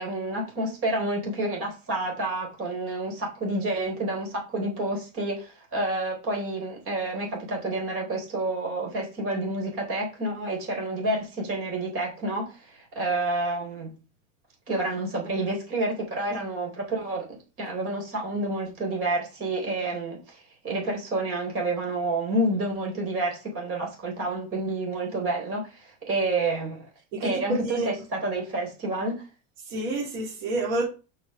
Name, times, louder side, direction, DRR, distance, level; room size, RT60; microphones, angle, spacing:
voice 1, 0.0-13.9 14.7-17.3 17.6-26.8 27.2-29.2, right 2 dB, 35° right, 3.6 m, -29 dB
voice 2, 27.1-27.9 29.7-30.8, right 2 dB, 65° right, 3.5 m, -29 dB
6.1 x 4.9 x 6.7 m
cardioid pair, 170°, 41 cm